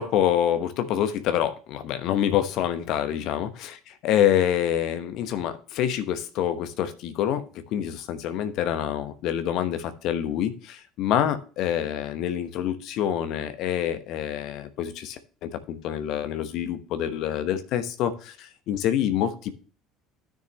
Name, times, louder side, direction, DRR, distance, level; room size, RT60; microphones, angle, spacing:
voice 1, 0.0-3.8 4.0-7.4 7.7-19.5, left 10 dB, 55° left, 11 dB, 1.0 m, -26 dB
13.0 x 6.5 x 3.2 m, 0.38 s
figure-of-eight pair, 60°, 0 cm